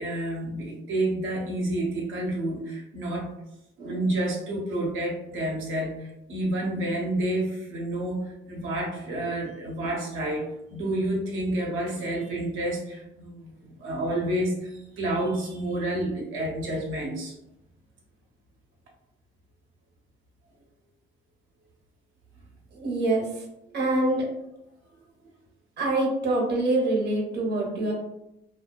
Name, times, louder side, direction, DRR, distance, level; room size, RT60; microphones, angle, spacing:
voice 1, 0.0-3.3 3.8-17.3, right 1 dB, 85° right, -1 dB, 0.8 m, -29 dB
voice 2, 22.7-23.4 23.7-24.3 25.8-27.9, right 2 dB, 55° right, -1 dB, 0.8 m, -25 dB
2.3 x 2.2 x 2.4 m, 0.86 s
cardioid pair, 90°, 20 cm